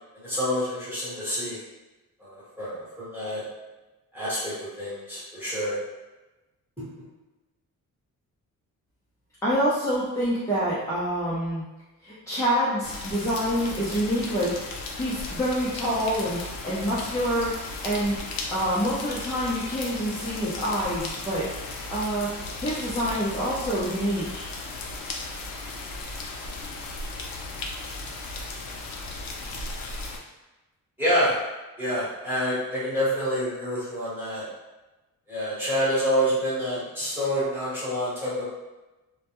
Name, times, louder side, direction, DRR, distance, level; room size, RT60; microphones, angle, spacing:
voice 1, 0.1-1.6 2.2-3.4 4.1-5.8 31.0-31.4 31.8-34.5 35.3-38.4, equal, 5° right, -12 dB, 1.0 m, -27 dB
voice 2, 9.4-11.6 12.0-14.6 15.0-17.6 17.8-18.2 18.5-21.5 21.9-22.3 22.6-24.4, equal, 10° left, -10 dB, 0.4 m, -26 dB
sound 1, 12.8-30.2, left 3 dB, 85° left, 0.5 m, -36 dB
2.1 x 2.1 x 2.9 m, 1.1 s
wide cardioid pair, 165°, 33 cm